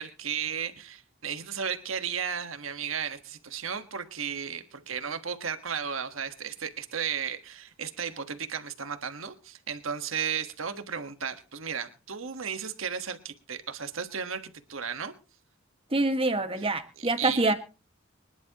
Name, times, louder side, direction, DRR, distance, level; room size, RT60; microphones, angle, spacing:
voice 1, 0.0-15.1 16.6-16.7 17.0-17.5, right 7 dB, 90° right, 9 dB, 1.4 m, -34 dB
voice 2, 15.9-17.5, right 2 dB, 30° right, 7 dB, 1.6 m, -25 dB
25.0 x 11.0 x 2.9 m, 0.33 s
head